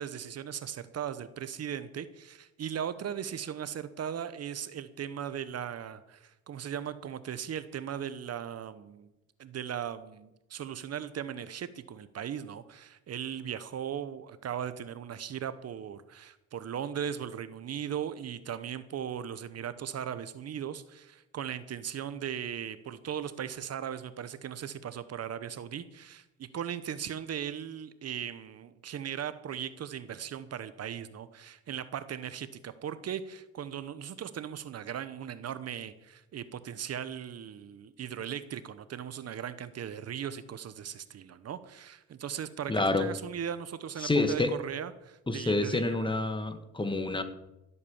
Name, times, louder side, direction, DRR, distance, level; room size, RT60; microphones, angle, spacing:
voice 1, 0.0-9.1 9.4-46.1, right 9 dB, 55° right, 13 dB, 0.9 m, -38 dB
voice 2, 42.7-43.1 44.0-44.5 45.3-47.2, left 2 dB, 15° left, 9 dB, 1.6 m, -28 dB
16.0 x 8.4 x 7.1 m, 0.93 s
cardioid pair, 90°, 30 cm